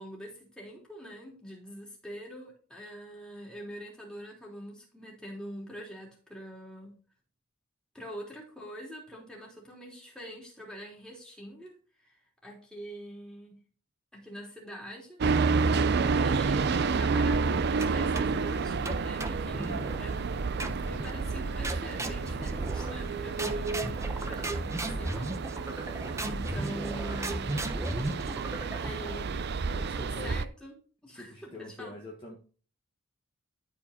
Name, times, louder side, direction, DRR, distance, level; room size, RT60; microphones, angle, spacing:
voice 1, 0.0-7.0 7.9-11.7 12.0-12.1 12.4-13.6 14.1-15.2 16.1-20.4 20.8-25.8 26.3-27.6 28.7-29.3 29.8-30.7 31.0-31.9, equal, 5° left, -3 dB, 3.6 m, -44 dB
sound 1, 15.2-30.5, right 4 dB, 50° right, 0.5 m, -30 dB
sound 2, 17.8-18.4 18.8-20.0 20.6-21.1 21.6-23.1 23.4-29.1, right 2 dB, 15° right, 0.9 m, -36 dB
voice 2, 29.0-30.3 31.1-32.4, left 2 dB, 25° left, -2 dB, 1.7 m, -46 dB
13.0 x 5.0 x 4.2 m, 0.39 s
head